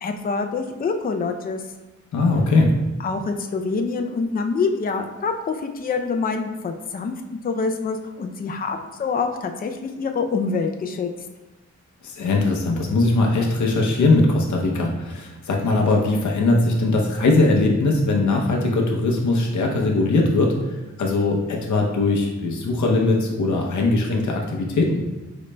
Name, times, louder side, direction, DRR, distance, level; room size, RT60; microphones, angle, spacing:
voice 1, 0.0-1.6 3.0-11.1, left 4 dB, 30° left, 5 dB, 0.4 m, -26 dB
voice 2, 2.1-2.7 12.0-20.5 21.0-25.0, left 2 dB, 75° left, 0 dB, 0.7 m, -20 dB
5.1 x 3.9 x 2.2 m, 1.1 s
cardioid pair, 80°, 29 cm